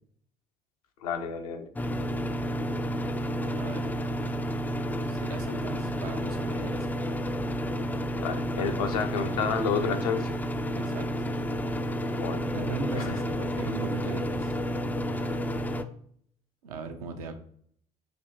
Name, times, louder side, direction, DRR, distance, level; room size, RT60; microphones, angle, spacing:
voice 1, 1.0-1.7 8.2-10.4 12.1-12.5 13.0-13.2, left 5 dB, 70° left, 5 dB, 0.6 m, -30 dB
sound 1, 1.8-15.8, equal, 10° left, 0.3 m, -31 dB
voice 2, 3.3-3.9 5.1-7.0 10.7-11.1 12.5-14.6 16.6-17.4, right 5 dB, 75° right, 6 dB, 0.6 m, -38 dB
5.2 x 2.7 x 2.8 m, 0.63 s
figure-of-eight pair, 55°, 19 cm